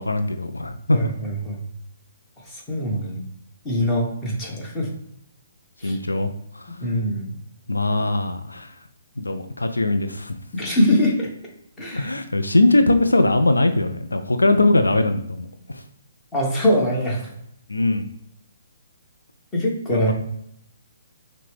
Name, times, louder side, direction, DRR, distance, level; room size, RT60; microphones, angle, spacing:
voice 1, 0.0-1.0 5.8-6.8 7.7-8.7 9.2-10.4 11.9-15.8 17.7-18.1 19.9-20.1, left 2 dB, 85° left, 8 dB, 0.4 m, -21 dB
voice 2, 0.9-1.6 2.5-3.2 3.6-4.9 5.8-6.0 6.8-7.3 10.5-11.3 11.8-12.2 16.3-17.3 19.5-20.1, equal, 15° left, -3 dB, 1.3 m, -23 dB
6.1 x 2.2 x 3.3 m, 0.73 s
figure-of-eight pair, 135°, 0 cm